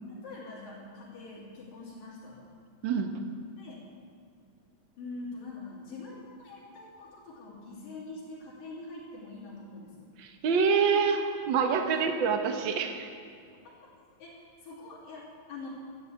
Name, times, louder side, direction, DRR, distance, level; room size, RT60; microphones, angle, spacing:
voice 1, 0.1-2.5 3.6-3.9 5.0-10.1 14.2-15.7, left 3 dB, 80° left, -7 dB, 4.7 m, -44 dB
voice 2, 10.2-13.1, right 5 dB, 75° right, 5 dB, 1.1 m, -26 dB
13.5 x 11.5 x 8.2 m, 2.4 s
omnidirectional pair, 3.8 m